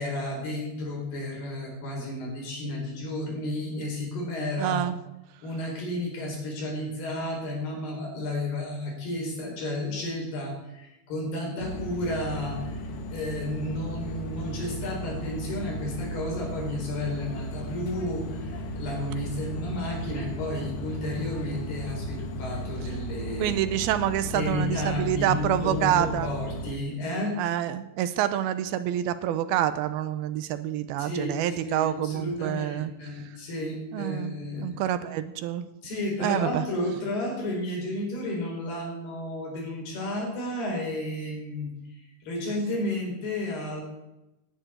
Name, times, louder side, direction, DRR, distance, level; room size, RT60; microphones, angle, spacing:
voice 1, 0.0-4.8 5.4-23.6 24.3-27.4 31.0-34.7 35.8-41.7 42.2-43.8, left 1 dB, 85° left, -1 dB, 6.4 m, -32 dB
voice 2, 4.6-5.0 23.4-26.3 27.4-32.9 33.9-35.7 36.2-36.6, right 11 dB, 85° right, 12 dB, 2.6 m, -27 dB
sound 1, 11.6-26.7, equal, 65° left, 1.4 m, -35 dB
18.0 x 11.0 x 4.5 m, 0.95 s
omnidirectional pair, 4.5 m